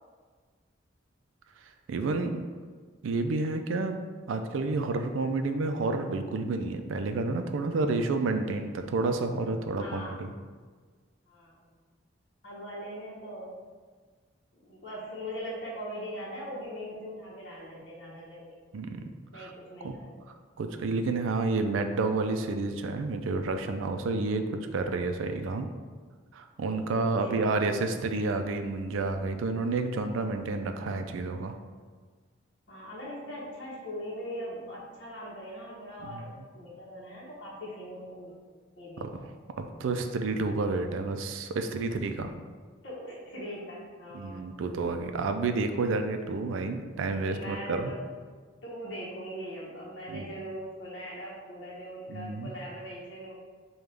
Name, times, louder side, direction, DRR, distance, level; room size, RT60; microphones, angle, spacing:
voice 1, 1.9-2.4 3.0-4.0 4.3-10.3 18.7-19.5 19.8-20.0 20.6-25.7 26.3-31.5 36.0-36.2 39.0-39.3 39.6-42.3 44.1-47.9 50.1-50.3 52.1-52.5, right 3 dB, 80° right, 7 dB, 0.4 m, -30 dB
voice 2, 9.8-10.3 11.3-11.6 12.4-13.5 14.6-18.6 19.3-20.1 24.1-24.2 26.9-27.6 32.7-38.4 38.8-39.1 42.8-44.6 47.2-48.0 48.6-53.3, equal, 65° left, -6 dB, 0.9 m, -41 dB
5.2 x 2.3 x 3.3 m, 1.5 s
head